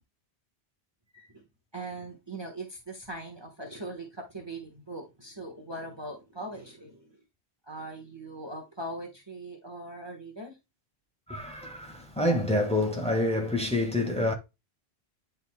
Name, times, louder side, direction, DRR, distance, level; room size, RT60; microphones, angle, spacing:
voice 1, 1.1-1.4 1.7-7.2 7.7-10.6, right 2 dB, 25° right, 1.3 m, -40 dB
voice 2, 11.3-14.3, left 1 dB, 5° left, 1.6 m, -27 dB
9.4 x 5.4 x 2.2 m
omnidirectional pair, 1.1 m